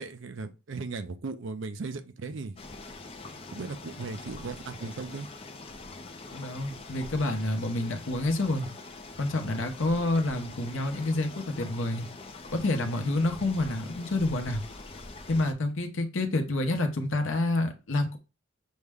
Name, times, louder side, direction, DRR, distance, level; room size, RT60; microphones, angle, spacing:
voice 1, 0.0-2.6 3.5-5.3, right 4 dB, 60° right, 0.5 m, -37 dB
sound 1, 2.6-15.5, left 3 dB, 25° left, 0.5 m, -44 dB
voice 2, 6.3-8.7 9.2-12.1 12.5-14.6 15.3-18.2, left 2 dB, 70° left, 0.8 m, -28 dB
6.3 x 2.1 x 3.5 m
head